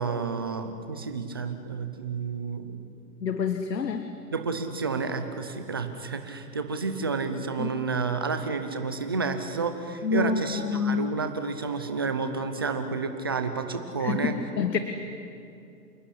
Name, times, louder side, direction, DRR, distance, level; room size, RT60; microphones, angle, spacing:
voice 1, 0.0-2.8 4.3-14.3, right 4 dB, 15° right, 7 dB, 0.6 m, -30 dB
voice 2, 3.2-4.1 7.6-7.7 10.0-11.0 14.0-14.8, left 5 dB, 85° left, 8 dB, 1.7 m, -27 dB
27.5 x 17.5 x 10.0 m, 2.6 s
hypercardioid pair, 165°, 48 cm